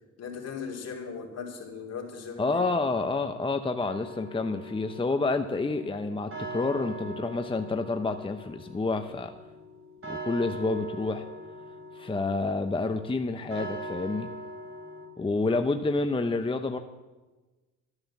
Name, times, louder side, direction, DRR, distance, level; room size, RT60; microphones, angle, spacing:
voice 1, 0.2-2.6, left 6 dB, 55° left, 1 dB, 3.0 m, -38 dB
voice 2, 2.4-9.3 10.1-11.2 11.9-14.3 15.2-16.8, left 3 dB, 15° left, 7 dB, 0.7 m, -29 dB
sound 1, 3.8-15.1, right 1 dB, 45° right, 4.2 m, -42 dB
12.5 x 9.8 x 7.2 m, 1.2 s
cardioid pair, 90°, 30 cm